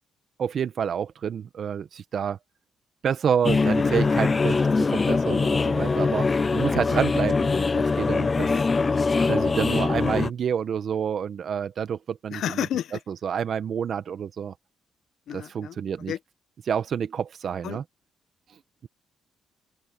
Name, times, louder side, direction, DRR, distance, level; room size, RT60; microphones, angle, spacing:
voice 1, 0.4-2.4 3.0-6.3 6.5-8.5 9.3-12.6 13.1-14.5 15.3-16.1 16.7-17.8, right 7 dB, 55° right, 1.1 m, -28 dB
sound 1, 3.4-10.3, left 4 dB, 30° left, 0.3 m, -23 dB
voice 2, 8.5-8.8 12.3-13.0 15.3-15.8 16.1-16.2 17.6-17.8, left 10 dB, 70° left, 1.1 m, -32 dB
open air
cardioid pair, 90°, 0 cm